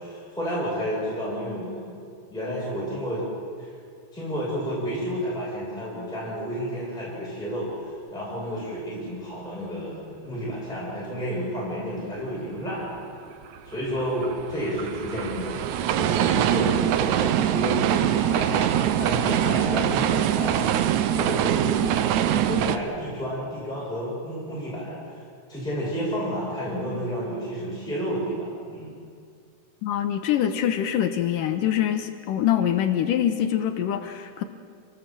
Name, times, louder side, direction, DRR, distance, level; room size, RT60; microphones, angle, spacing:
voice 1, 0.0-3.3 3.6-3.7 4.1-13.0 13.6-20.6 21.2-21.9 22.2-25.2 25.5-28.9, equal, ahead, -7 dB, 7.1 m, -31 dB
sound 1, 13.4-22.8, right 10 dB, 75° right, 1.8 m, -23 dB
voice 2, 29.8-34.4, left 10 dB, 70° left, 7 dB, 2.5 m, -24 dB
28.0 x 19.0 x 7.7 m, 2.2 s
omnidirectional pair, 4.2 m